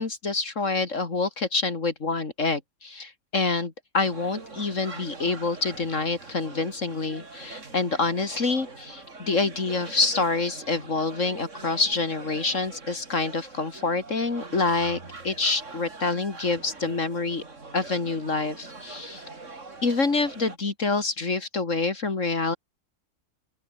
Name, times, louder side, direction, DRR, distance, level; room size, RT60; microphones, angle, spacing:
voice 1, 0.0-15.0 15.2-17.4 17.7-19.2 19.8-22.6, left 3 dB, 60° left, 2.9 m, -27 dB
sound 1, 4.0-20.6, right 3 dB, 60° right, 3.4 m, -43 dB
open air
omnidirectional pair, 1.5 m